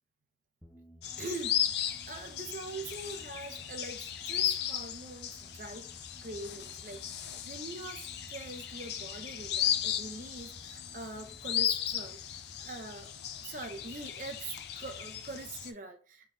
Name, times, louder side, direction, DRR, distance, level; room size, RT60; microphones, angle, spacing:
sound 1, 0.6-13.8, equal, ahead, 0.7 m, -58 dB
sound 2, 1.0-15.7, left 10 dB, 55° left, 0.5 m, -36 dB
voice 1, 1.2-5.9 6.2-13.1 13.4-16.3, right 2 dB, 45° right, 0.8 m, -43 dB
4.5 x 3.1 x 3.5 m
head